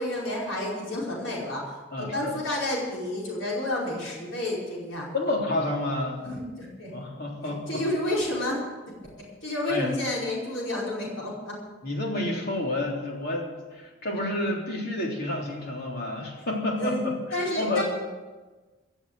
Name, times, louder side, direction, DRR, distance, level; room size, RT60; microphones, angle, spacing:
voice 1, 0.0-1.6 2.0-5.1 6.2-6.9 7.7-8.6 9.2-11.5 16.8-17.8, left 1 dB, 85° left, -4 dB, 5.0 m, -30 dB
voice 2, 1.9-2.3 5.1-6.2 6.9-7.8 9.7-9.9 11.8-17.8, left 2 dB, 55° left, -1 dB, 3.5 m, -30 dB
16.0 x 7.2 x 9.2 m, 1.3 s
head